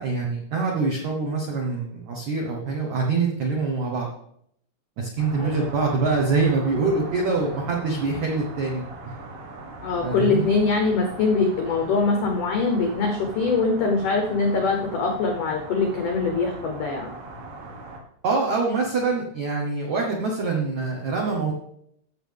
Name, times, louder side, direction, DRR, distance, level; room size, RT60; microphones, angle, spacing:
voice 1, 0.0-4.1 5.0-9.1 10.0-10.5 18.2-21.5, right 4 dB, 80° right, -1 dB, 1.6 m, -25 dB
sound 1, 5.2-18.0, right 2 dB, 60° right, 2.7 m, -40 dB
voice 2, 9.8-17.1, left 4 dB, 85° left, 2 dB, 1.8 m, -23 dB
15.5 x 6.8 x 3.5 m, 0.70 s
omnidirectional pair, 5.3 m